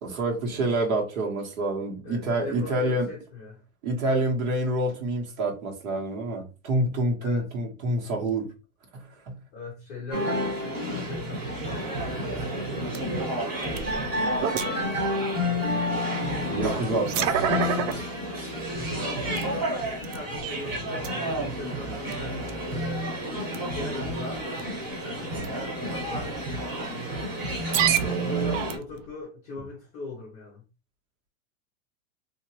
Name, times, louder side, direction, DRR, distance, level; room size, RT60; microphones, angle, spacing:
voice 1, 0.0-3.1 3.8-8.5 8.9-9.3 16.5-18.0, right 1 dB, 80° right, 1.5 m, -27 dB
voice 2, 2.0-3.6 7.2-7.5 9.5-13.0 14.1-14.9 15.4-16.1 18.7-23.1 23.7-25.3 25.8-26.4 28.2-30.6, left 3 dB, 15° left, 0.5 m, -40 dB
sound 1, 10.1-28.8, equal, 20° right, 1.0 m, -30 dB
sound 2, 12.9-13.0 13.6-14.9 15.6-15.7 16.8-17.9 18.6-18.7 19.4-19.5 20.0-20.7 21.0-21.1 22.1-22.2 22.5-22.7 23.5-23.8 24.5-24.8 25.4-25.5 26.5-26.6 27.6-29.1, right 9 dB, 65° right, 0.5 m, -28 dB
2.9 x 2.8 x 2.8 m
supercardioid pair, 160°, 41 cm